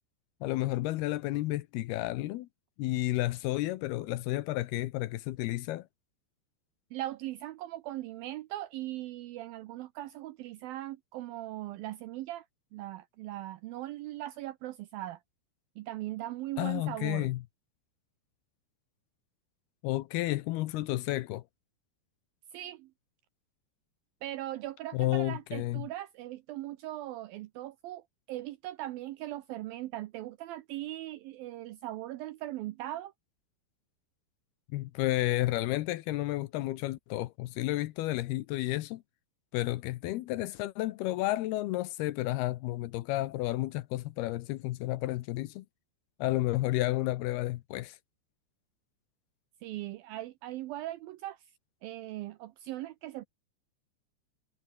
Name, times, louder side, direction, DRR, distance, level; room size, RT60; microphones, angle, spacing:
voice 1, 0.4-2.5 2.8-5.9 16.6-17.4 19.8-21.4 24.9-25.9 34.7-39.0 39.5-45.7 46.2-48.0, left 17 dB, 75° left, 2.5 m, -31 dB
voice 2, 6.9-12.5 12.7-15.2 15.8-17.3 22.5-22.9 24.2-33.1 49.6-51.4 51.8-53.2, right 15 dB, 80° right, 2.1 m, -39 dB
omnidirectional pair, 5.0 m